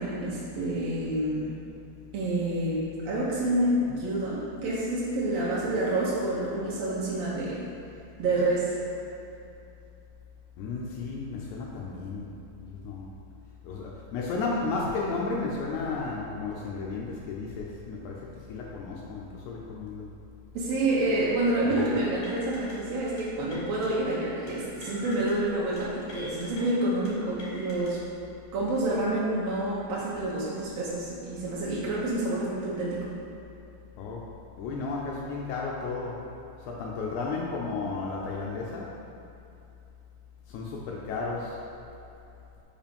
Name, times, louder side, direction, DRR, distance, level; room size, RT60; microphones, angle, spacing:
voice 1, 0.0-1.5 2.1-7.7 8.2-8.7 20.5-28.0 28.5-33.1, right 1 dB, 70° right, -7 dB, 1.6 m, -28 dB
voice 2, 10.6-12.3 12.6-13.1 13.6-20.1 21.6-22.0 34.0-34.2 34.6-36.2 36.6-38.9 40.5-41.6, left 3 dB, 80° left, -3 dB, 1.7 m, -33 dB
sound 1, 22.2-22.7 23.0-23.2 23.5-23.9 24.5-25.3 25.6-25.8 26.1-26.6 27.0-27.9, left 1 dB, 60° left, 2.0 m, -45 dB
5.3 x 4.9 x 5.2 m, 2.7 s
omnidirectional pair, 4.1 m